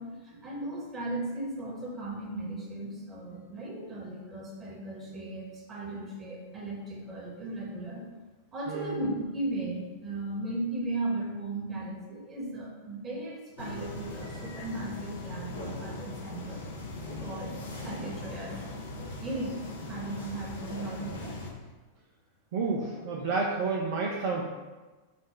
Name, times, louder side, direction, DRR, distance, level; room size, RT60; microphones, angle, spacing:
voice 1, 0.0-8.1 8.5-16.7 17.2-18.6 19.2-19.6 19.9-21.4, right 2 dB, 25° right, -2 dB, 1.0 m, -36 dB
voice 2, 8.7-9.0 22.5-24.5, right 4 dB, 50° right, -2 dB, 0.4 m, -30 dB
sound 1, 13.6-21.5, left 2 dB, 65° left, 0.6 m, -40 dB
4.0 x 2.1 x 4.4 m, 1.2 s
figure-of-eight pair, 90°, 0 cm